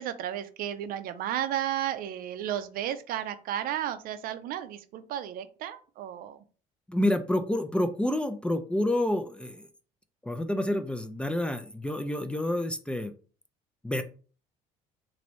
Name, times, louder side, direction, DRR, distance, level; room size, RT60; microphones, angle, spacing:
voice 1, 0.0-6.4, right 11 dB, 65° right, 11 dB, 0.4 m, -33 dB
voice 2, 6.9-9.7 10.2-13.1 13.8-14.0, left 1 dB, 5° left, 8 dB, 0.3 m, -28 dB
3.0 x 2.6 x 3.0 m, 0.40 s
supercardioid pair, 85°, 16 cm